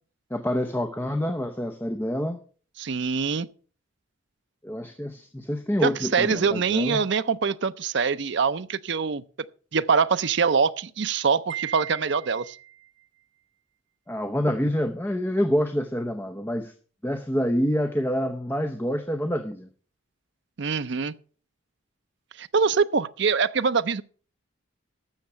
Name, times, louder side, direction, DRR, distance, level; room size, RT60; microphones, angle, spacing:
voice 1, 0.3-2.4 4.6-7.0 14.1-16.7 17.0-19.7, equal, 10° left, 0.7 m, -27 dB
voice 2, 2.8-3.5 5.8-9.2 9.7-12.6 20.6-21.1 22.4-24.0, right 5 dB, 55° right, 0.5 m, -24 dB
Wind chime, 11.5-12.9, right 12 dB, 80° right, 1.3 m, -37 dB
13.0 x 7.2 x 5.6 m
head